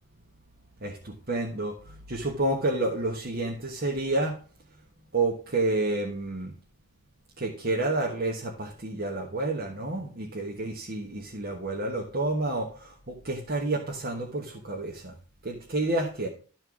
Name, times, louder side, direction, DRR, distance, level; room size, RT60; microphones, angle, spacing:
voice 1, 0.8-4.4 5.1-6.5 7.4-15.1 15.4-16.3, right 2 dB, 45° right, 0 dB, 1.2 m, -29 dB
12.5 x 4.5 x 6.0 m, 0.40 s
head